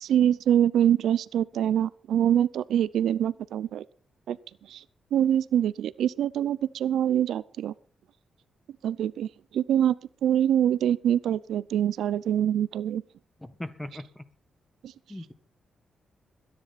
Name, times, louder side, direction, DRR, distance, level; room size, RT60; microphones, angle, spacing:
voice 1, 0.0-3.8 4.3-4.4 4.7-4.8 5.1-7.7 8.8-9.3 9.5-9.9 10.2-13.0, right 10 dB, 90° right, 19 dB, 0.6 m, -24 dB
voice 2, 13.4-14.2 15.1-15.3, left 1 dB, 10° left, 13 dB, 1.4 m, -39 dB
21.5 x 10.5 x 4.2 m, 0.41 s
cardioid pair, 125°, 0 cm